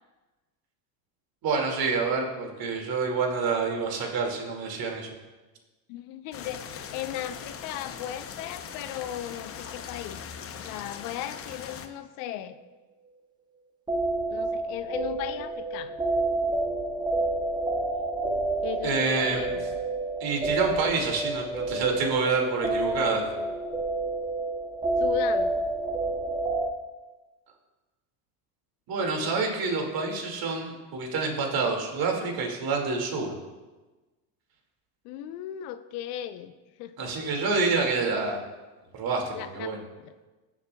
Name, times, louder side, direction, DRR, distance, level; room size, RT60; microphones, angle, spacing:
voice 1, 1.4-5.1 18.8-19.6 20.2-23.2 28.9-33.4 37.0-38.4 38.9-39.8, right 4 dB, 45° right, 1 dB, 2.2 m, -27 dB
voice 2, 5.9-10.2 10.5-12.6 14.3-16.0 18.6-19.7 22.6-23.5 25.0-25.5 35.0-36.5 36.8-37.1 39.3-40.1, left 11 dB, 70° left, 12 dB, 0.7 m, -36 dB
sound 1, 6.3-11.9, left 7 dB, 30° left, 0.7 m, -40 dB
sound 2, 13.9-26.7, right 2 dB, 10° right, 0.7 m, -29 dB
18.0 x 7.2 x 2.3 m, 1.2 s
supercardioid pair, 110°, 49 cm